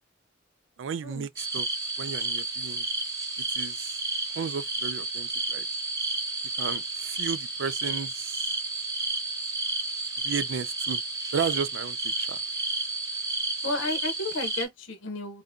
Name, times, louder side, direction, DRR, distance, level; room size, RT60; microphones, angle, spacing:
voice 1, 0.8-1.7 2.0-2.9 3.6-3.9 4.4-5.7 6.6-8.5 10.2-11.0 11.3-12.4, right 6 dB, 70° right, 0.4 m, -33 dB
sound 1, 1.4-14.7, right 2 dB, 20° right, 0.7 m, -31 dB
voice 2, 13.6-15.4, left 2 dB, 70° left, 0.8 m, -32 dB
2.6 x 2.6 x 3.5 m
head